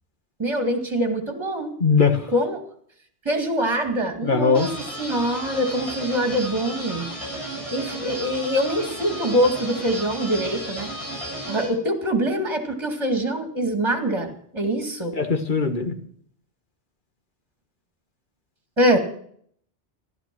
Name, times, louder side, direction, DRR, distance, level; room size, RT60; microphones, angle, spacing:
voice 1, 0.4-1.7 2.3-2.6 3.2-4.7 5.0-7.1 7.7-10.9 11.5-15.2 18.8-19.0, equal, 25° right, 4 dB, 2.2 m, -24 dB
voice 2, 1.8-2.2 4.2-4.7 15.2-15.9, left 5 dB, 45° left, 5 dB, 1.7 m, -20 dB
sound 1, 4.5-11.7, right 1 dB, 30° left, 8.0 m, -33 dB
15.0 x 12.5 x 6.1 m, 0.63 s
omnidirectional pair, 1.2 m